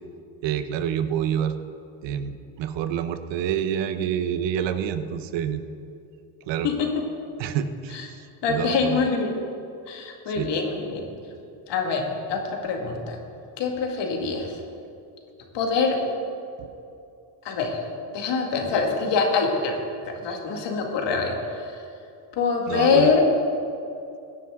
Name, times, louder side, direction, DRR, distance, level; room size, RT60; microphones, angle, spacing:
voice 1, 0.4-1.6 2.0-5.6 6.4-6.7 7.4-9.0 10.3-10.5 16.6-16.7 22.7-23.1, right 9 dB, 75° right, 10 dB, 0.9 m, -28 dB
voice 2, 8.4-9.4 9.9-11.0 11.7-13.2 13.6-14.5 15.5-16.0 17.4-17.8 18.1-19.7 20.2-21.7 22.4-23.2, left 5 dB, 70° left, 2 dB, 2.1 m, -24 dB
17.0 x 9.8 x 3.7 m, 2.6 s
supercardioid pair, 85°, 44 cm